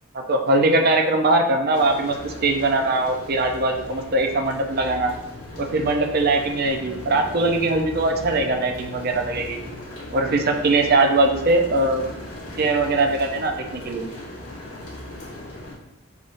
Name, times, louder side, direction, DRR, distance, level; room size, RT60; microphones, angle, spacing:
voice 1, 0.1-5.1 5.6-9.6 10.1-12.0 12.6-14.0, right 2 dB, 45° right, 4 dB, 0.5 m, -21 dB
sound 1, 1.7-15.7, left 1 dB, 80° left, 1.3 m, -38 dB
5.3 x 3.5 x 2.6 m, 0.87 s
head